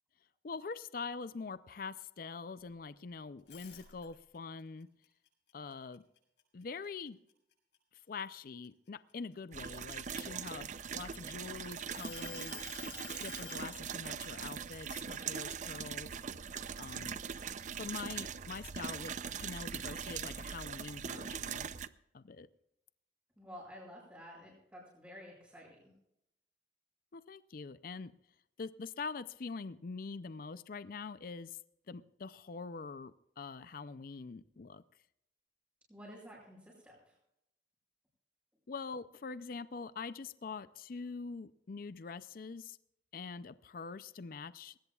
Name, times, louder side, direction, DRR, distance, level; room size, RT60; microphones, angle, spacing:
voice 1, 0.4-4.9 5.5-6.0 6.5-7.2 8.1-12.9 13.2-16.1 16.8-17.2 17.8-19.1 19.4-21.7 22.1-22.5 27.1-28.1 28.6-31.6 31.9-34.8 38.7-42.8 43.1-44.8, left 4 dB, 55° left, 14 dB, 0.5 m, -44 dB
sound 1, 3.4-4.4 4.8-6.6 7.1-7.3 7.7-9.6 10.3-11.4 11.9-13.7, left 9 dB, 85° left, 7.8 m, -49 dB
sound 2, 9.5-21.9, right 7 dB, 45° right, 0.5 m, -41 dB
voice 2, 23.4-25.9 35.9-37.1, equal, 10° right, -8 dB, 7.6 m, -51 dB
21.0 x 19.0 x 2.4 m, 0.79 s
head